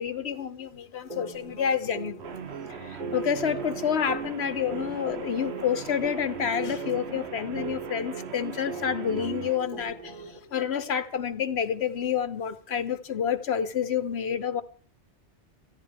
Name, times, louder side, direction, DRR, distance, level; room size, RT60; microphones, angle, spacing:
voice 1, 0.0-2.2 2.8-14.6, left 8 dB, 65° left, 1.2 m, -29 dB
sound 1, 1.1-10.4, right 4 dB, 45° right, 3.5 m, -39 dB
Guitar, 2.2-9.6, right 7 dB, 65° right, 1.1 m, -40 dB
24.5 x 14.5 x 3.5 m
omnidirectional pair, 1.2 m